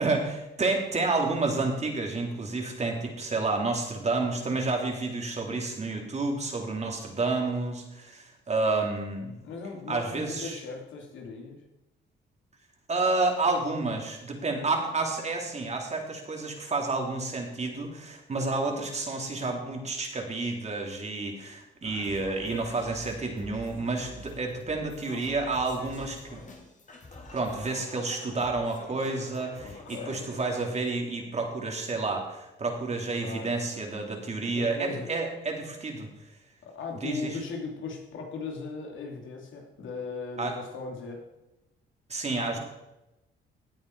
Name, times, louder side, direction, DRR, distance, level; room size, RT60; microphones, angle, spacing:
voice 1, 0.0-9.3 9.9-10.6 12.9-26.4 27.3-36.1 37.0-37.4 40.4-40.6 42.1-42.6, right 3 dB, 35° right, 2 dB, 3.1 m, -30 dB
voice 2, 9.4-11.6 29.6-30.3 33.2-33.5 33.7-33.8 34.5-35.1 36.6-41.3 42.4-42.6, left 4 dB, 75° left, 1 dB, 3.0 m, -38 dB
Singing, 21.8-30.9, left 2 dB, 40° left, 2.9 m, -47 dB
17.0 x 8.6 x 4.7 m, 0.96 s
cardioid pair, 90°, 20 cm